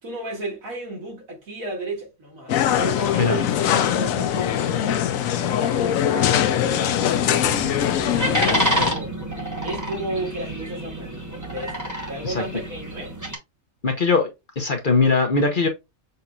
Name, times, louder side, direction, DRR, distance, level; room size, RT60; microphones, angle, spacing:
voice 1, 0.0-4.8 5.3-9.2 9.6-13.1, right 1 dB, 75° right, 2.6 m, -33 dB
sound 1, 2.5-8.9, left 10 dB, 75° left, 1.0 m, -22 dB
Growling, 3.0-10.6, right 3 dB, 30° right, 0.6 m, -40 dB
sound 2, 7.1-13.4, right 1 dB, 15° right, 1.2 m, -28 dB
voice 2, 13.8-14.3 14.6-15.7, left 4 dB, 40° left, 1.0 m, -20 dB
6.7 x 2.8 x 2.3 m
omnidirectional pair, 1.5 m